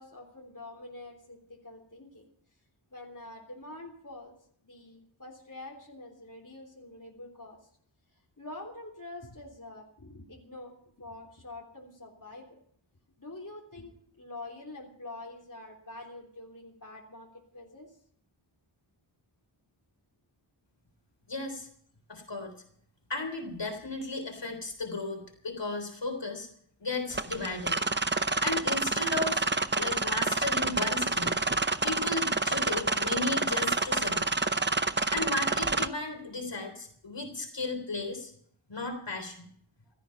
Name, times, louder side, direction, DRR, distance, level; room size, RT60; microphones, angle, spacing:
voice 1, 0.0-2.3 2.9-4.3 4.6-7.6 8.1-12.6 13.2-18.0, left 2 dB, 40° left, -2 dB, 3.3 m, -46 dB
voice 2, 21.3-21.7 22.1-22.5 23.1-26.5 26.8-27.8 28.4-29.5 29.8-31.4 31.8-34.3 35.1-38.3 38.7-39.4, left 3 dB, 60° left, 4 dB, 3.7 m, -35 dB
sound 1, 27.1-35.9, right 3 dB, 25° right, 0.7 m, -28 dB
16.0 x 13.5 x 5.8 m, 0.63 s
wide cardioid pair, 65°, 49 cm